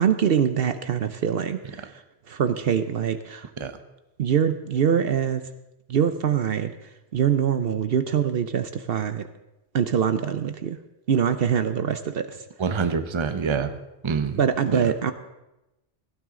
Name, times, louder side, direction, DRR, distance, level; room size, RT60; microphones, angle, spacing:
voice 1, 0.0-1.9 2.3-3.5 4.2-5.4 5.9-6.7 7.1-9.2 9.7-10.8 11.1-12.3 14.4-15.1, right 8 dB, 65° right, 10 dB, 0.9 m, -23 dB
voice 2, 12.6-13.8 14.0-14.4 14.7-14.8, right 5 dB, 30° right, 10 dB, 0.8 m, -26 dB
17.0 x 12.5 x 3.7 m, 0.95 s
omnidirectional pair, 1.1 m